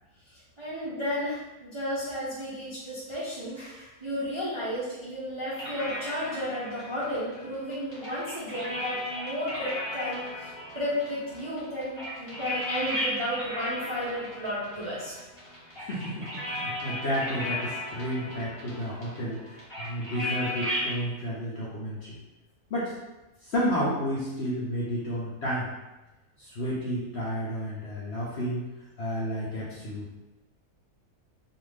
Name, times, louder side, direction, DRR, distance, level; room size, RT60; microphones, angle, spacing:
voice 1, 0.6-10.5 10.7-15.1, equal, 35° right, -10 dB, 0.4 m, -33 dB
sound 1, 5.5-20.9, left 1 dB, 20° left, 1.0 m, -36 dB
voice 2, 15.8-22.2 22.7-22.9 23.4-25.7 26.4-28.7 29.0-30.2, equal, 60° left, -7 dB, 0.7 m, -31 dB
2.6 x 2.4 x 3.2 m, 1.0 s
omnidirectional pair, 1.7 m